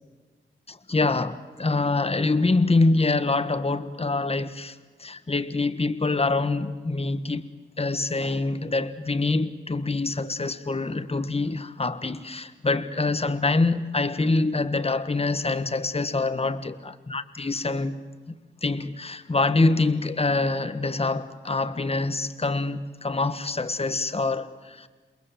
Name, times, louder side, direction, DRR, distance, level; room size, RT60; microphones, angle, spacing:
voice 1, 0.7-4.7 5.0-7.5 7.8-18.0 18.6-24.9, left 3 dB, 30° left, 1.5 m, -25 dB
28.0 x 21.5 x 7.6 m
cardioid pair, 65°, 21 cm